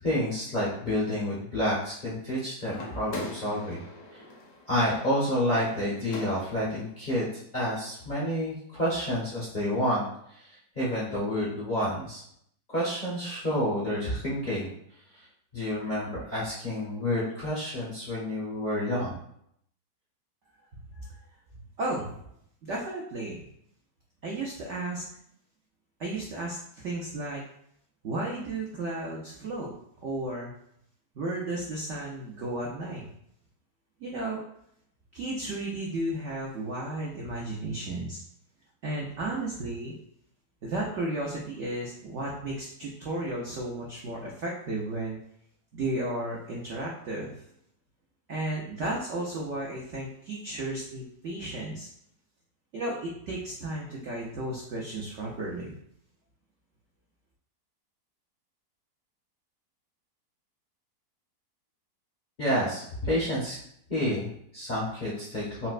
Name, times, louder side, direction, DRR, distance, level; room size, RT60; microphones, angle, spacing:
voice 1, 0.0-3.8 4.1-4.2 4.7-7.3 7.5-10.5 10.7-12.2 12.7-14.7 15.1-15.2 15.5-19.2 62.4-63.6 63.9-65.7, left 1 dB, 45° left, -8 dB, 0.6 m, -29 dB
sound 1, 2.7-6.8, left 2 dB, 60° left, 0.9 m, -42 dB
voice 2, 21.5-22.2 22.6-23.4 24.2-25.0 26.0-27.4 28.0-29.7 30.0-30.5 31.2-33.1 34.0-34.4 35.1-38.2 38.8-39.9 40.6-45.2 45.7-47.3 48.3-51.9 52.7-55.7, right 2 dB, 70° right, -3 dB, 0.7 m, -34 dB
4.1 x 2.0 x 2.4 m, 0.70 s
omnidirectional pair, 1.9 m